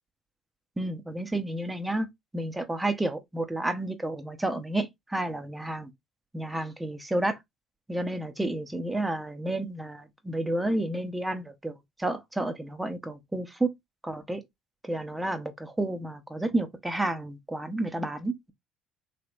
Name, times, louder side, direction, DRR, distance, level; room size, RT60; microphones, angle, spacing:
voice 1, 0.8-2.1 2.3-5.9 6.3-7.4 7.9-13.7 14.0-14.4 14.8-18.5, right 1 dB, 10° right, 0.9 m, -31 dB
3.3 x 3.1 x 2.5 m
hypercardioid pair, 60°, 0 cm